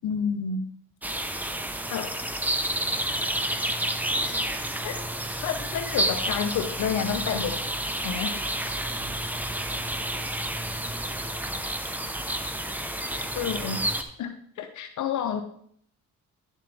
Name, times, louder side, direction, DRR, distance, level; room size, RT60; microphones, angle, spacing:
voice 1, 0.0-0.7 1.9-2.1 4.2-4.3 4.8-4.9 5.4-7.6 8.0-8.4 13.4-13.8 14.2-15.4, left 7 dB, 75° left, 8 dB, 0.9 m, -29 dB
sound 1, 1.0-14.0, right 1 dB, 5° right, 0.9 m, -30 dB
voice 2, 1.6-4.8 10.9-11.2 13.0-13.8 15.2-15.3, left 2 dB, 10° left, 0 dB, 2.5 m, -50 dB
10.5 x 7.4 x 3.4 m, 0.63 s
cardioid pair, 90°, 30 cm